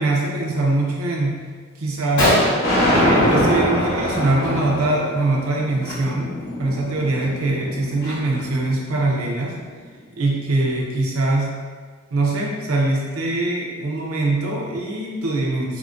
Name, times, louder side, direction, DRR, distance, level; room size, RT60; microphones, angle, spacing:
voice 1, 0.0-1.4 1.8-2.4 2.9-6.3 6.6-9.5 10.1-11.6 12.1-15.8, right 2 dB, 85° right, -2 dB, 0.7 m, -22 dB
Gunshot gunfire, 1.5-1.6 1.9-2.0 2.2-3.8 4.1-4.5 4.7-4.9 5.7-5.9 6.5-6.6 7.0-8.6, equal, 50° left, 1.2 m, -24 dB
sound 1, 2.6-8.8, equal, 90° left, 1.5 m, -23 dB
4.7 x 2.2 x 2.4 m, 1.5 s
head